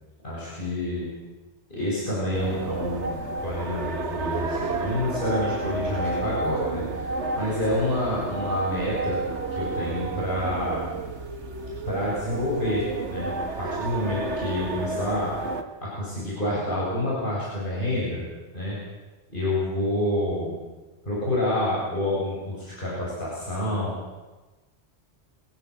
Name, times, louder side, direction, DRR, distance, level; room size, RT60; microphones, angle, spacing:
voice 1, 0.2-1.1 1.7-7.1 7.3-9.2 9.5-10.9 11.9-15.3 15.8-18.2 18.5-18.8 19.3-20.6 21.1-23.9, left 1 dB, 50° left, -7 dB, 8.0 m, -28 dB
sound 1, 2.3-15.6, right 3 dB, 80° right, 1.9 m, -31 dB
23.0 x 16.5 x 8.5 m, 1.2 s
omnidirectional pair, 1.1 m